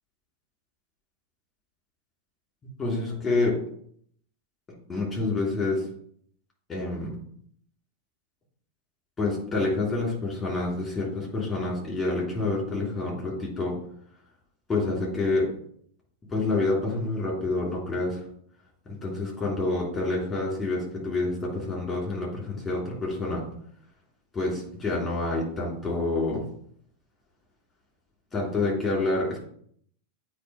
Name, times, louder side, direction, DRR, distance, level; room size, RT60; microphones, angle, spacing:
voice 1, 2.6-3.6 4.9-5.9 6.7-7.2 9.2-13.8 14.7-15.5 16.3-18.2 18.8-23.4 24.3-26.4 28.3-29.4, left 2 dB, 15° left, -3 dB, 3.1 m, -28 dB
8.5 x 3.1 x 4.8 m, 0.64 s
figure-of-eight pair, 90°, 0 cm